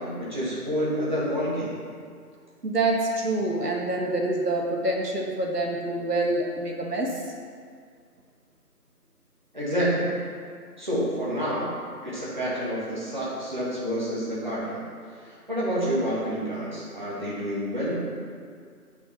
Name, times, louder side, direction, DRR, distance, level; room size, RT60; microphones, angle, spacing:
voice 1, 0.0-1.8 9.5-10.2 10.8-11.7 12.0-14.8 15.5-18.0, equal, 30° right, -8 dB, 1.8 m, -28 dB
voice 2, 2.6-7.3, right 2 dB, 80° right, 0 dB, 1.4 m, -26 dB
8.1 x 5.8 x 5.6 m, 2.1 s
figure-of-eight pair, 180°, 47 cm